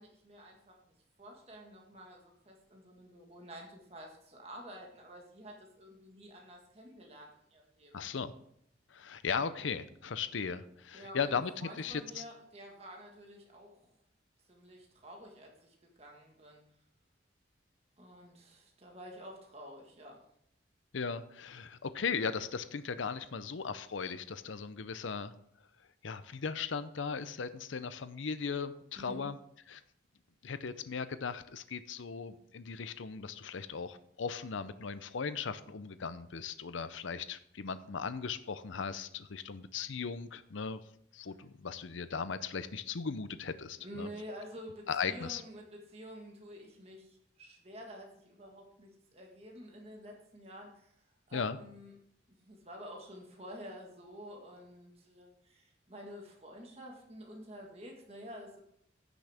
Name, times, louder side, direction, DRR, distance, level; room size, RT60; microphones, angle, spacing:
voice 1, 0.0-7.9 10.9-13.9 14.5-16.6 18.0-20.2 29.0-29.3 43.8-51.9 52.4-58.6, equal, 30° right, 0 dB, 1.6 m, -50 dB
voice 2, 7.9-8.3 8.9-12.2 20.9-25.3 26.0-29.4 29.7-29.8 30.4-40.8 41.1-44.1 44.9-45.4 51.3-51.6, left 5 dB, 85° left, 13 dB, 0.6 m, -37 dB
15.5 x 6.2 x 3.5 m, 0.71 s
head